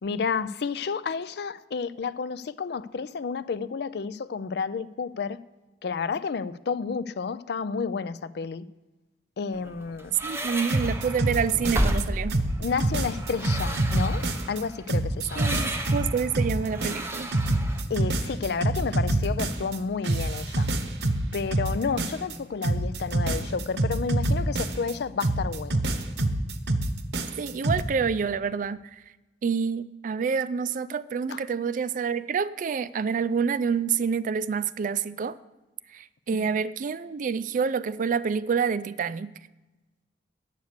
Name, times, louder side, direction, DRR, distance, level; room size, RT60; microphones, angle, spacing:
voice 1, 0.0-5.4 5.8-8.6 9.4-10.1 12.6-15.7 17.9-20.7 21.3-25.8 31.3-31.4, left 5 dB, 65° left, 0.4 m, -31 dB
sound 1, 9.5-17.8, right 1 dB, 15° right, 0.8 m, -33 dB
voice 2, 10.2-12.4 15.4-17.3 27.4-28.8 29.4-35.4 35.9-39.3, right 6 dB, 50° right, 0.3 m, -27 dB
sound 2, 10.7-12.0 12.3-14.6 14.9-19.8 20.0-22.4 22.6-24.9 25.2-27.8, right 1 dB, 70° right, 0.8 m, -26 dB
9.3 x 8.1 x 6.6 m
head